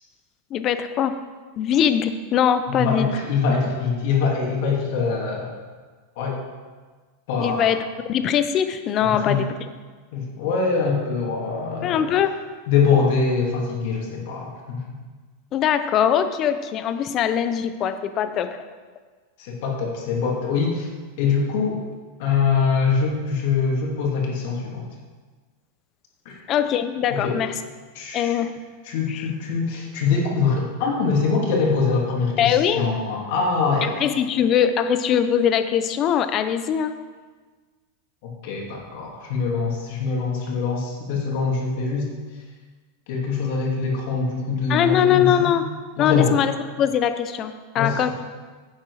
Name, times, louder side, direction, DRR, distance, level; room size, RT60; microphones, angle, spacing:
voice 1, 0.5-1.2 1.6-3.1 7.4-7.8 8.1-9.5 11.8-12.4 15.5-18.6 26.5-27.5 28.1-28.5 29.1-29.3 32.4-32.8 33.8-37.0 44.7-45.6 46.0-46.5 46.8-48.1, left 9 dB, 35° left, 10 dB, 0.7 m, -21 dB
voice 2, 2.7-5.5 6.2-6.4 7.3-7.7 9.0-9.4 10.1-12.1 12.7-14.8 19.4-20.9 21.2-21.8 22.2-24.9 26.2-26.4 27.1-27.4 27.9-28.3 28.8-33.9 38.2-42.1 43.1-45.5 46.0-46.3 47.8-48.1, left 5 dB, 60° left, -1 dB, 2.7 m, -23 dB
10.5 x 7.3 x 4.9 m, 1.4 s
supercardioid pair, 140°, 0 cm